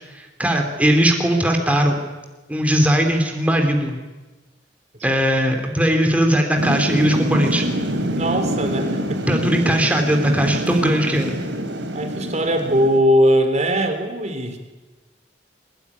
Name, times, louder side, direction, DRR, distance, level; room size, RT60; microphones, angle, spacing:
voice 1, 0.1-2.0 2.5-4.0 5.0-7.7 9.3-11.4, equal, 10° right, 3 dB, 3.0 m, -19 dB
Thunder / Rain, 6.6-13.0, right 1 dB, 75° right, 3.7 m, -26 dB
voice 2, 8.2-9.2 11.9-14.6, equal, 40° right, 6 dB, 3.8 m, -20 dB
23.0 x 20.0 x 9.8 m, 1.2 s
head